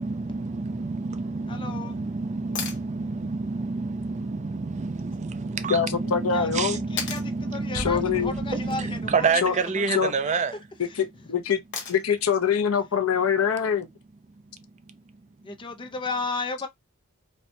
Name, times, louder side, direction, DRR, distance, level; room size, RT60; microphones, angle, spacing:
voice 1, 0.0-10.5 14.9-15.0, right 4 dB, 35° right, 0.4 m, -28 dB
voice 2, 1.5-2.0 6.3-10.4 15.4-16.7, left 3 dB, 25° left, 0.4 m, -34 dB
sound 1, 2.5-2.8 5.1-5.2 7.0-7.3 9.3-9.7 11.7-12.2 14.3-14.4, left 6 dB, 60° left, 0.9 m, -34 dB
voice 3, 5.7-6.8 7.7-8.3 9.4-9.5 9.9-10.1 10.8-11.6 11.9-13.9, left 7 dB, 80° left, 0.6 m, -24 dB
sound 2, 7.8-10.2, right 1 dB, 90° right, 1.0 m, -40 dB
4.2 x 2.2 x 2.6 m
head